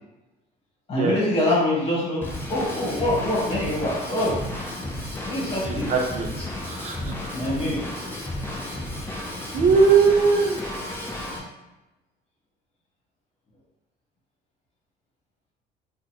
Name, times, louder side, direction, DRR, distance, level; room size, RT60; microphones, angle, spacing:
voice 1, 0.9-4.4 5.1-5.9 7.0-7.8, left 1 dB, 35° left, -6 dB, 1.5 m, -25 dB
Drum kit / Drum, 2.2-11.4, left 1 dB, 15° left, 0.6 m, -33 dB
voice 2, 5.7-6.3 6.7-7.1 9.5-10.6, right 5 dB, 45° right, 1 dB, 0.6 m, -20 dB
3.7 x 2.1 x 3.0 m, 1.1 s
cardioid pair, 110°, 17 cm